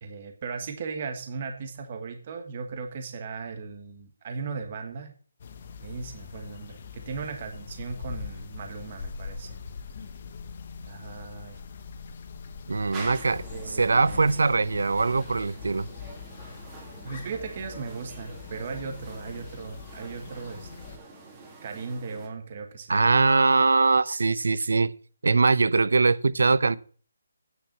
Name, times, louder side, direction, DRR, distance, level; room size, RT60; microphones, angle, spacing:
voice 1, 0.0-5.1 5.8-9.5 10.8-11.6 13.0-13.2 13.5-14.4 17.0-21.1 21.6-23.1, right 4 dB, 30° right, 1.5 m, -37 dB
sound 1, 5.4-21.0, left 5 dB, 35° left, 1.2 m, -42 dB
voice 2, 12.7-15.9 22.9-24.9 25.2-26.8, right 3 dB, 75° right, 0.8 m, -22 dB
sound 2, 12.9-22.3, right 3 dB, 15° right, 2.4 m, -46 dB
9.4 x 6.8 x 7.3 m
hypercardioid pair, 170°, 0 cm